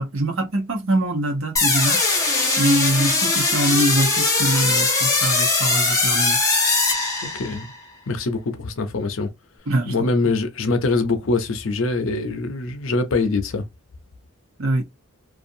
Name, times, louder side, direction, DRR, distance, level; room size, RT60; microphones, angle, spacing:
voice 1, 0.0-2.0 2.6-6.4 9.7-10.1 14.6-14.8, right 1 dB, 75° right, 0.9 m, -23 dB
sound 1, 1.6-7.7, left 3 dB, 15° left, 0.8 m, -20 dB
voice 2, 7.2-7.7 8.1-9.3 9.9-13.6, left 3 dB, 70° left, 0.6 m, -23 dB
2.5 x 2.4 x 2.6 m
head